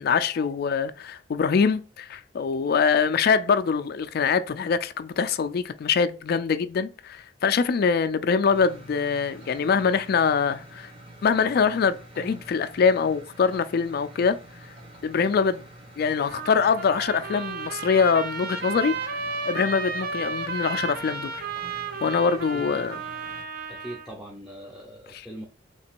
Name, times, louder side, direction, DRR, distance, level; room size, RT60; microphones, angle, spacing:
voice 1, 0.0-10.9 11.2-14.4 15.0-15.6 16.0-21.4 22.0-23.0, left 5 dB, 55° left, 0.3 m, -24 dB
sound 1, 8.4-23.4, right 1 dB, 30° right, 1.2 m, -47 dB
Trumpet, 16.2-24.1, right 4 dB, 55° right, 0.6 m, -33 dB
voice 2, 23.7-25.4, equal, 5° right, 0.6 m, -41 dB
3.3 x 2.9 x 4.4 m
head